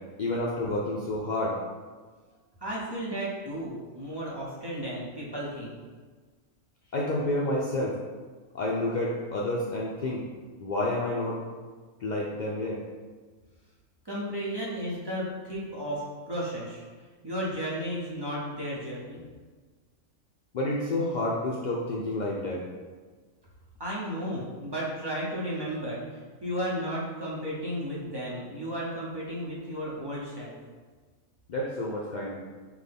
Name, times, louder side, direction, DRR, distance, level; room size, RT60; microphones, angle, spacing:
voice 1, 0.2-1.6 6.9-8.0 8.5-10.2 10.6-11.4 12.0-12.8 20.5-22.6 31.5-32.3, left 1 dB, 85° left, -4 dB, 0.4 m, -29 dB
voice 2, 2.6-5.8 14.0-16.8 17.2-19.2 23.8-26.0 26.4-30.6, equal, 25° right, -7 dB, 0.7 m, -33 dB
6.0 x 2.2 x 3.4 m, 1.4 s
omnidirectional pair, 1.4 m